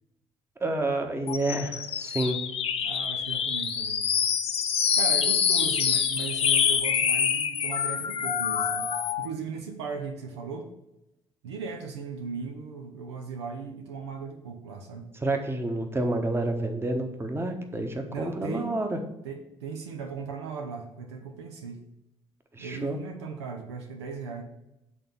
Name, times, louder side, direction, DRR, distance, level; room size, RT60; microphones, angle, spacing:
voice 1, 0.6-2.4 15.2-19.0 22.5-23.0, right 2 dB, 15° right, 5 dB, 1.1 m, -29 dB
sound 1, 1.3-9.3, left 7 dB, 45° left, 0.7 m, -26 dB
voice 2, 2.8-4.1 4.9-10.7 11.4-15.1 18.1-18.8 19.2-21.8 22.6-24.4, right 5 dB, 75° right, 4 dB, 0.7 m, -37 dB
7.8 x 3.9 x 5.6 m, 0.92 s
figure-of-eight pair, 50°, 14 cm